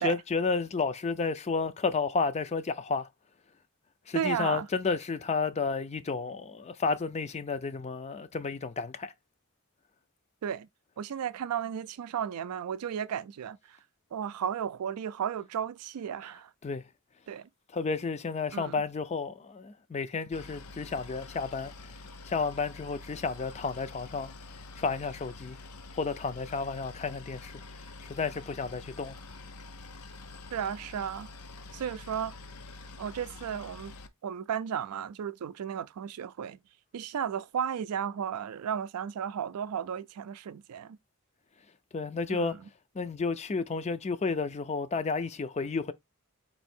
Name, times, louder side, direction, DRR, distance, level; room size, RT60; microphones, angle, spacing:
voice 1, 0.0-3.1 4.1-9.1 16.6-16.8 17.7-21.7 22.3-24.3 24.8-25.6 25.9-27.6 28.0-29.1 41.9-42.6 43.0-45.9, left 4 dB, 30° left, 0.4 m, -31 dB
voice 2, 4.1-4.7 10.4-10.7 11.0-13.8 14.1-16.5 17.3-17.5 18.5-18.8 30.5-31.3 31.7-32.4 33.0-33.9 34.2-36.6 36.9-41.0 42.3-42.6, right 8 dB, 80° right, 0.4 m, -34 dB
Boat Water vehicle, 20.3-34.1, left 3 dB, 80° left, 0.6 m, -47 dB
4.4 x 2.7 x 4.2 m
head